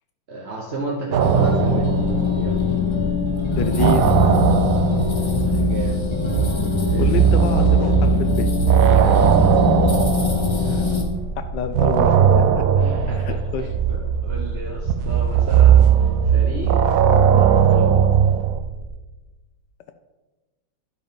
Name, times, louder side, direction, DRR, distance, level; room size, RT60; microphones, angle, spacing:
voice 1, 0.3-1.9 2.4-2.6 5.5-6.0 6.9-7.2 8.8-9.2 12.8-16.8 17.2-18.1, right 2 dB, 40° right, -1 dB, 1.0 m, -32 dB
sound 1, 1.1-3.0 3.3-11.2 11.7-18.6, right 8 dB, 85° right, 0.7 m, -18 dB
sound 2, 1.2-11.0, left 5 dB, 25° left, 0.6 m, -22 dB
sound 3, 1.7-18.9, right 2 dB, 55° right, 1.3 m, -33 dB
voice 2, 3.5-4.3 7.0-8.5 10.7-10.8 11.5-12.1 12.5-12.6 13.2-13.6, left 8 dB, 75° left, 9 dB, 1.1 m, -27 dB
11.5 x 5.0 x 5.2 m, 1.2 s
omnidirectional pair, 2.2 m